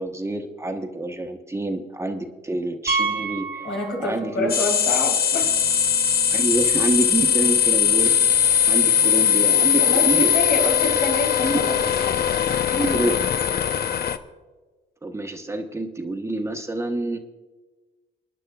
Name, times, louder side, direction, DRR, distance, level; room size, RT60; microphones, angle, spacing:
voice 1, 0.0-3.7 4.0-4.5 6.3-8.2 8.7-10.3 11.4-11.6 12.7-13.1 13.5-13.6 15.0-17.2, right 2 dB, 15° right, 4 dB, 1.1 m, -27 dB
Piano, 2.9-4.5 4.7-4.9 5.5-5.6 5.8-5.9 8.0-8.1, right 4 dB, 50° right, 1.3 m, -28 dB
voice 2, 3.6-5.5 9.8-12.2, left 2 dB, 85° left, -1 dB, 3.7 m, -27 dB
sound 1, 4.5-14.2, left 9 dB, 50° left, 0.7 m, -20 dB
sound 2, 5.4-12.5, right 5 dB, 80° right, 2.1 m, -43 dB
28.0 x 9.8 x 2.4 m, 1.3 s
cardioid pair, 90°, 20 cm